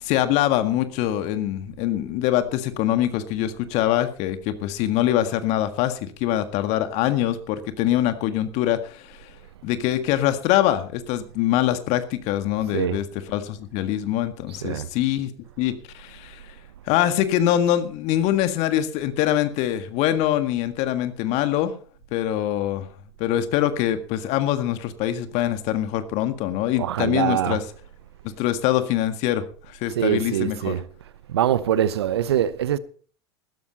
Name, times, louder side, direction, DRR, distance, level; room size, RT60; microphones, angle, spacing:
voice 1, 0.0-9.3 9.6-15.3 15.6-16.4 16.9-21.7 22.1-22.9 23.2-27.6 28.2-30.7, left 12 dB, 55° left, 1.8 m, -24 dB
voice 2, 26.8-27.6 30.0-30.8 31.3-32.8, right 10 dB, 75° right, 0.9 m, -23 dB
15.5 x 13.0 x 4.2 m
figure-of-eight pair, 80°, 14 cm